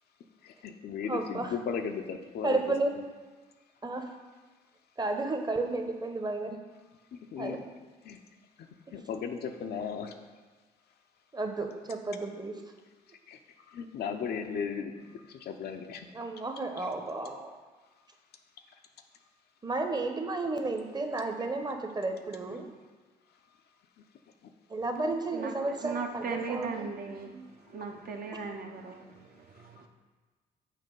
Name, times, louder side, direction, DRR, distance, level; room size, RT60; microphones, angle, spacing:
voice 1, 0.4-2.6 7.1-7.6 8.0-8.2 8.6-8.7 8.9-10.1 13.1-13.4 13.7-16.1 16.8-16.9 22.5-22.7 24.4-24.5 27.8-27.9, left 6 dB, 60° left, 6 dB, 0.6 m, -36 dB
voice 2, 1.1-1.5 2.4-3.0 3.8-4.1 5.0-6.6 7.4-7.6 11.3-12.5 16.1-17.6 19.6-22.7 24.7-26.9, right 2 dB, 20° right, 5 dB, 0.9 m, -32 dB
voice 3, 25.3-29.9, right 5 dB, 50° right, 3 dB, 0.8 m, -38 dB
6.7 x 2.9 x 5.3 m, 1.3 s
hypercardioid pair, 50°, 19 cm